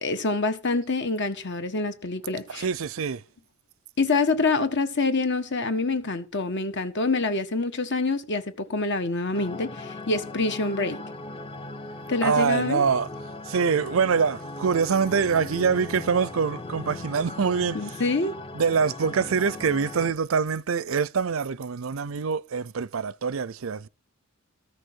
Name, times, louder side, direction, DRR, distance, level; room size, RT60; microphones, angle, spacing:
voice 1, 0.0-2.6 4.0-11.0 12.1-12.9 17.7-18.3, left 3 dB, 60° left, 1.5 m, -26 dB
voice 2, 2.5-3.2 12.2-13.1 13.5-17.8 18.5-23.9, right 6 dB, 70° right, 0.5 m, -25 dB
sound 1, 9.3-20.1, left 2 dB, 25° left, 0.8 m, -38 dB
14.0 x 6.5 x 6.3 m
head